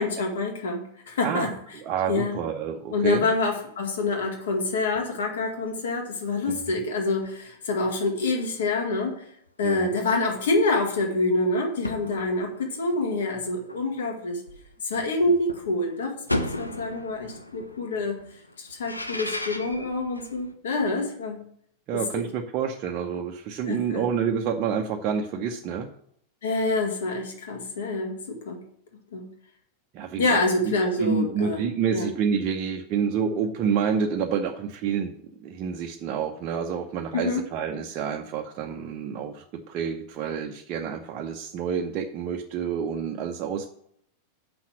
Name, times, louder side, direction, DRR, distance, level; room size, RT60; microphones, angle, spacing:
voice 1, 0.0-1.5 2.1-2.4 2.9-9.3 9.6-14.4 14.8-18.2 18.6-21.4 21.9-22.0 23.7-24.0 26.4-28.6 29.1-29.3 30.2-31.6 31.9-32.1 37.1-37.4, left 2 dB, 60° left, 2 dB, 2.1 m, -26 dB
voice 2, 1.8-3.3 6.7-6.8 9.6-9.9 21.9-25.9 29.9-30.4 31.0-35.1 35.4-43.7, right 7 dB, 40° right, 2 dB, 0.8 m, -28 dB
sound 1, 3.5-3.8 4.3-4.4 4.9-5.3 5.9-6.0 6.2-6.3 7.2-7.4 8.2-8.7 9.5-9.6 10.4-10.5 11.3-11.4 11.8-15.1 15.5-20.5, left 1 dB, 85° left, 0.7 m, -36 dB
6.9 x 5.7 x 7.3 m, 0.67 s
figure-of-eight pair, 90°, 0 cm